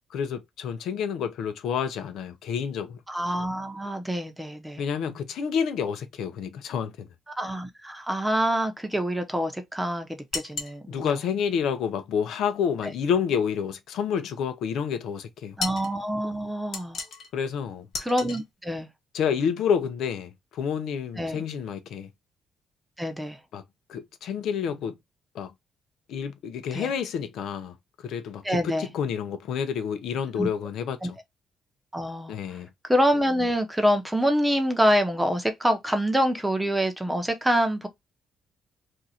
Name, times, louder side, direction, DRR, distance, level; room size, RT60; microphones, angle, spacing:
voice 1, 0.1-3.0 4.8-7.1 10.9-15.6 17.3-17.9 19.1-22.1 23.5-23.6 23.9-24.9 25.3-25.5 26.1-27.7 28.0-31.0 32.3-32.7, left 7 dB, 80° left, 0.6 m, -29 dB
voice 2, 3.1-4.8 7.4-11.2 15.6-17.0 18.0-18.9 21.2-21.4 23.0-23.4 26.7-26.9 28.4-28.9 30.4-30.5 31.0-31.1 31.9-32.3 32.9-37.9, equal, 5° right, 0.8 m, -26 dB
sound 1, 10.3-10.8 15.6-15.9 16.7-17.3 17.9-18.4, left 4 dB, 60° left, 1.0 m, -33 dB
2.7 x 2.4 x 4.1 m
cardioid pair, 90°, 0 cm